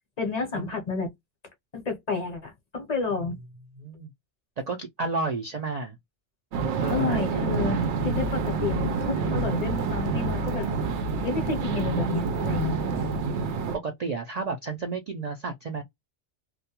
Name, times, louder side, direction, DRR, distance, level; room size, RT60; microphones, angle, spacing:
voice 1, 0.2-1.1 1.7-3.4 6.9-7.8 8.0-10.7 11.2-12.8, left 4 dB, 40° left, 0.8 m, -30 dB
voice 2, 3.8-4.1 4.7-6.0 6.8-8.2 13.7-15.8, right 3 dB, 55° right, 0.4 m, -32 dB
sound 1, 6.5-13.8, right 4 dB, 85° right, 0.9 m, -27 dB
2.3 x 2.1 x 2.8 m
omnidirectional pair, 1.1 m